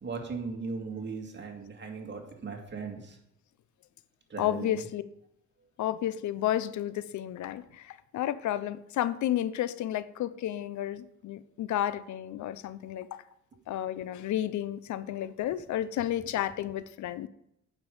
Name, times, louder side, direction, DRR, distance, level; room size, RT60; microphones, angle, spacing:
voice 1, 0.0-3.2 4.3-4.8, right 4 dB, 35° right, 2 dB, 2.2 m, -38 dB
voice 2, 4.4-5.0 5.8-13.2 13.7-17.3, left 12 dB, 70° left, 15 dB, 0.7 m, -32 dB
9.0 x 5.4 x 6.8 m, 0.78 s
cardioid pair, 90°, 30 cm